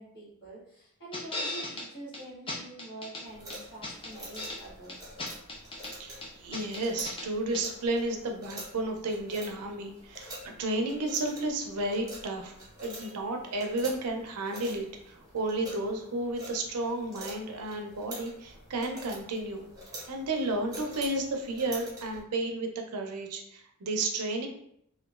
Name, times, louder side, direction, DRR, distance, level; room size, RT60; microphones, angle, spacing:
voice 1, 0.0-5.1, right 2 dB, 50° left, -9 dB, 1.4 m, -46 dB
sound 1, 1.1-1.9 2.1-2.2 2.5-3.2 3.5-4.6 4.9-5.9 6.2-7.3 7.5-7.6, left 2 dB, 25° left, 0.4 m, -37 dB
sound 2, 3.3-22.2, right 1 dB, 15° right, 0.9 m, -47 dB
voice 2, 6.0-12.5 12.8-19.7 20.1-24.5, right 2 dB, 80° right, 3 dB, 0.5 m, -32 dB
2.9 x 2.3 x 2.3 m, 0.71 s
head